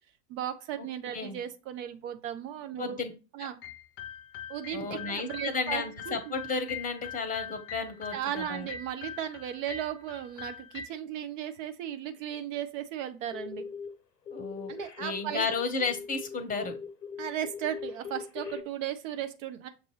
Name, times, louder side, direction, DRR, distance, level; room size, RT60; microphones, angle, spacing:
voice 1, 0.3-3.0 3.3-3.6 4.5-6.2 8.1-13.7 14.7-15.5 17.2-19.7, right 10 dB, 55° right, 9 dB, 0.7 m, -36 dB
voice 2, 2.8-3.1 4.7-8.7 14.3-14.7 15.0-16.8, left 4 dB, 15° left, 10 dB, 0.8 m, -33 dB
sound 1, 3.6-10.9, left 8 dB, 45° left, 0.5 m, -42 dB
sound 2, 13.3-13.9 14.3-18.6, left 6 dB, 90° left, 0.8 m, -40 dB
6.6 x 2.6 x 3.1 m, 0.30 s
figure-of-eight pair, 80°, 48 cm